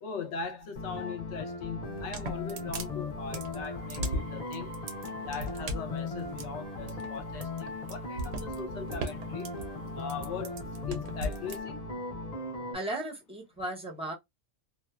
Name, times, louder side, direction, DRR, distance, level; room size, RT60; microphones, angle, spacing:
voice 1, 0.0-4.7 5.2-9.5 9.9-10.6 10.9-11.8, left 6 dB, 70° left, 0.9 m, -40 dB
sound 1, 0.8-12.8, left 2 dB, 50° left, 0.4 m, -38 dB
sound 2, 1.8-11.6, right 1 dB, 65° right, 0.8 m, -38 dB
sound 3, 3.3-5.8 6.1-10.7 11.5-12.0, right 1 dB, 90° right, 1.0 m, -53 dB
voice 2, 12.7-14.1, right 1 dB, 5° right, 0.4 m, -36 dB
2.6 x 2.2 x 2.2 m
omnidirectional pair, 1.3 m